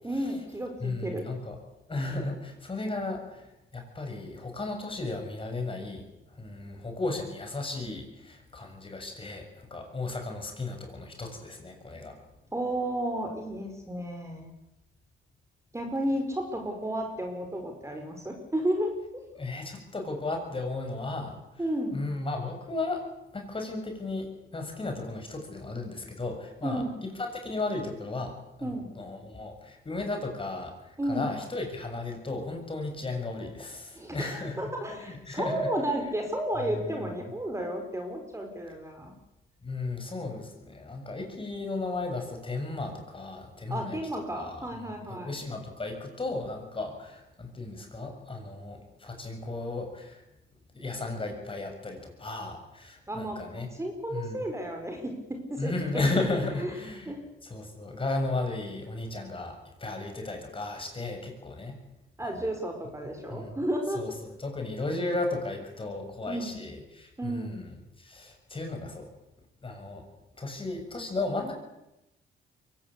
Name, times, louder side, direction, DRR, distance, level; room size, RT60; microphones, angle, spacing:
voice 1, 0.0-1.3 12.5-14.5 15.7-18.9 21.6-22.0 26.6-27.0 28.6-28.9 31.0-31.3 33.9-39.1 43.7-45.4 53.1-56.0 56.6-56.7 57.1-57.2 62.2-64.0 66.3-66.6 67.2-67.6, right 1 dB, 15° right, 3 dB, 4.8 m, -32 dB
voice 2, 0.8-1.6 1.9-6.0 6.3-12.2 19.4-21.4 21.9-23.0 23.3-28.3 28.6-34.6 35.0-35.7 36.8-37.1 39.6-44.7 45.1-50.2 50.7-53.7 54.1-54.4 55.6-57.1 57.4-61.8 62.3-62.4 63.3-63.5 64.0-64.1 64.4-67.7 68.0-69.1 69.6-70.0 70.4-71.5, left 2 dB, 25° left, 3 dB, 7.1 m, -35 dB
23.0 x 18.0 x 8.6 m, 0.91 s
cardioid pair, 90°, 20 cm